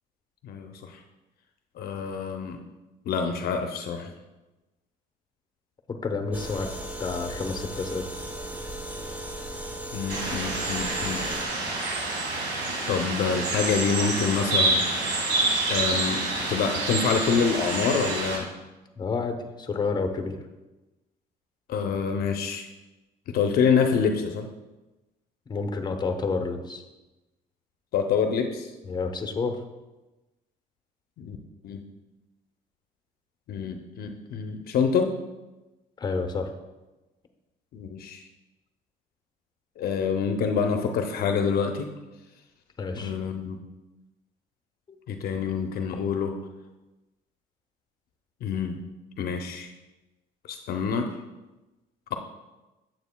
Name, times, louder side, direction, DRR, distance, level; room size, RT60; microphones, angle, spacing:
voice 1, 0.4-1.0 1.8-2.6 3.1-4.1 9.9-11.2 12.9-14.8 15.7-18.5 21.7-22.7 23.3-24.5 27.9-28.7 31.2-31.4 31.6-31.8 33.5-35.2 37.7-38.2 39.8-41.9 42.9-43.6 45.1-46.4 48.4-48.8 49.2-49.7 50.5-51.1, left 6 dB, 65° left, 5 dB, 0.6 m, -26 dB
voice 2, 6.0-6.7 7.0-8.1 19.0-20.4 25.5-26.8 28.8-29.6 36.0-36.5 42.8-43.2, left 4 dB, 25° left, 5 dB, 0.8 m, -29 dB
sound 1, 6.3-11.5, right 1 dB, 10° right, 0.9 m, -36 dB
sound 2, 10.1-18.4, right 2 dB, 85° right, 1.9 m, -27 dB
9.2 x 7.6 x 2.2 m, 1.1 s
cardioid pair, 110°, 17 cm